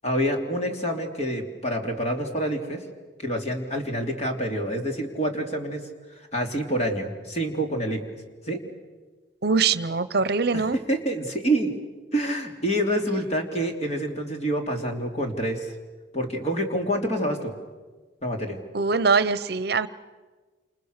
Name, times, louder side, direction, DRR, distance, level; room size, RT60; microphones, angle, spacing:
voice 1, 0.0-2.8 3.2-5.8 6.3-8.0 8.5-8.6 10.5-11.7 12.1-15.7 16.1-17.5 18.2-18.6, right 1 dB, 35° left, 3 dB, 3.2 m, -27 dB
voice 2, 9.4-10.8 18.7-19.9, right 4 dB, 60° right, 15 dB, 0.8 m, -22 dB
28.5 x 28.0 x 6.7 m, 1.3 s
head